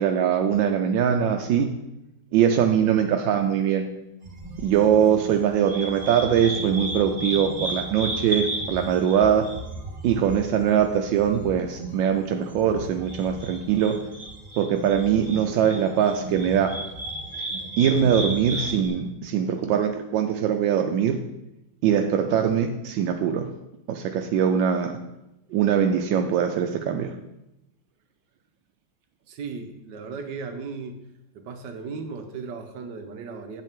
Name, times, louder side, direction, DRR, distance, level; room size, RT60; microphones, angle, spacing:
voice 1, 0.0-1.7 2.3-3.9 4.6-9.5 10.0-14.0 14.6-16.7 17.8-21.2 21.8-23.5 23.9-25.0 25.5-27.1, right 8 dB, 85° right, 5 dB, 1.3 m, -22 dB
sound 1, 4.2-18.9, right 1 dB, 30° right, 2.2 m, -34 dB
voice 2, 29.3-31.0 31.3-33.6, right 4 dB, 70° right, 7 dB, 1.4 m, -36 dB
8.5 x 8.2 x 3.6 m, 0.90 s
omnidirectional pair, 2.0 m